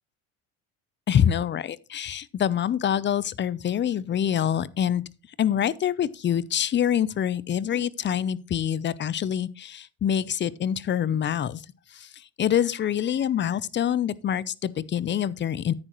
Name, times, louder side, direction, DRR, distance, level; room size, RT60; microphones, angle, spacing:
voice 1, 1.1-5.0 5.4-11.6 11.9-15.7, left 9 dB, 30° left, 0.6 m, -26 dB
10.5 x 8.9 x 3.0 m
supercardioid pair, 95°, 39 cm